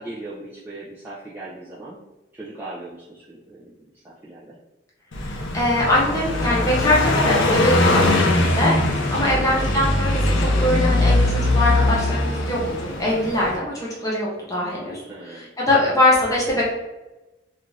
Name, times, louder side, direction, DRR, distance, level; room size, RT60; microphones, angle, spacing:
voice 1, 0.0-2.0 2.3-4.6 9.3-9.6 15.1-15.5, right 2 dB, 10° right, -8 dB, 0.3 m, -38 dB
Car passing by, 5.1-13.6, left 2 dB, 85° left, 0.5 m, -21 dB
voice 2, 5.2-16.6, left 1 dB, 20° left, -5 dB, 0.7 m, -22 dB
2.5 x 2.4 x 3.1 m, 1.1 s
head